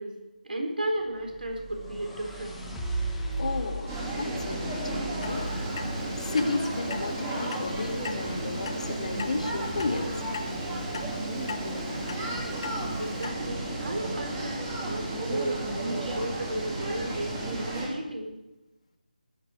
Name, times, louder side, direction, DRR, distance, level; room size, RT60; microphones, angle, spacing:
voice 1, 0.0-2.7 13.0-18.4, right 1 dB, 65° right, 3 dB, 4.2 m, -34 dB
sound 1, 1.1-7.2, right 2 dB, ahead, 1.1 m, -37 dB
voice 2, 3.4-5.5 6.2-10.2, left 3 dB, 45° left, 5 dB, 1.8 m, -33 dB
sound 2, 3.9-17.9, right 1 dB, 15° right, 2.7 m, -33 dB
Clock, 5.2-13.3, left 5 dB, 30° left, 1.0 m, -41 dB
19.5 x 10.5 x 5.0 m, 0.97 s
figure-of-eight pair, 165°, 5 cm